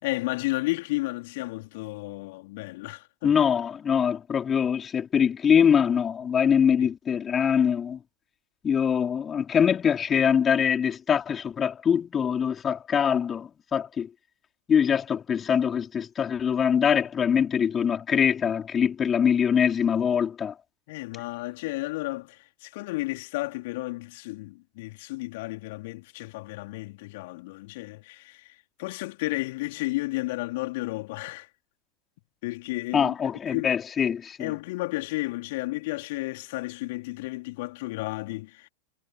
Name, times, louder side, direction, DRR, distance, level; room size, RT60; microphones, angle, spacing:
voice 1, 0.0-3.3 6.8-6.9 20.9-31.5 32.4-33.1 33.5-33.7 34.4-38.7, left 21 dB, 50° left, 4.2 m, -32 dB
voice 2, 3.2-8.0 8.6-14.1 14.7-20.5 32.9-34.5, left 7 dB, 20° left, 4.2 m, -23 dB
figure-of-eight pair, 90°, 0 cm